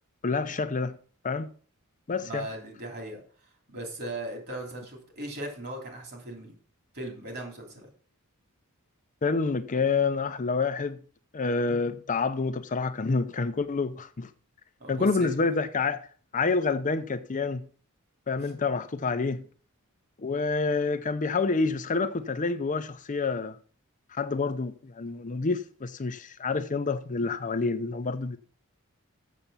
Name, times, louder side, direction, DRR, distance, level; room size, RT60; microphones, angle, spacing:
voice 1, 0.2-1.0 1.2-1.5 2.1-2.5 9.2-11.0 11.3-14.3 14.9-16.0 16.3-17.7 18.3-19.4 20.2-23.6 24.1-28.4, left 4 dB, 35° left, 0.6 m, -28 dB
voice 2, 2.2-3.2 3.7-6.5 6.9-7.9 14.8-15.3 18.4-18.5 19.1-19.4, right 1 dB, 50° right, 3.3 m, -38 dB
7.3 x 6.8 x 6.8 m
head